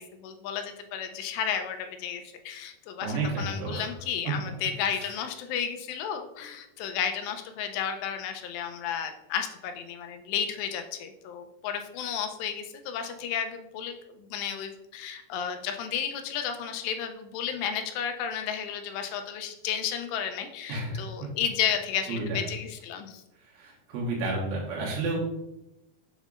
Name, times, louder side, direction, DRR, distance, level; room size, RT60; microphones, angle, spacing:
voice 1, 0.0-23.2, left 8 dB, 85° left, 6 dB, 2.8 m, -33 dB
voice 2, 3.0-3.9 4.9-5.1 20.7-21.0 22.1-22.4 23.5-25.2, right 2 dB, 70° right, -3 dB, 3.0 m, -31 dB
7.3 x 5.4 x 2.5 m, 0.89 s
omnidirectional pair, 4.8 m